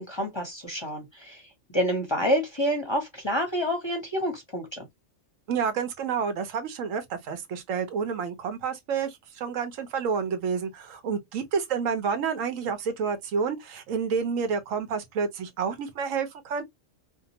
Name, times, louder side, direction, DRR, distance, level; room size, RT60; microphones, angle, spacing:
voice 1, 0.0-4.8, equal, 25° left, 0.6 m, -28 dB
voice 2, 5.5-16.6, right 6 dB, 80° right, 1.1 m, -29 dB
2.8 x 2.1 x 2.7 m
omnidirectional pair, 1.3 m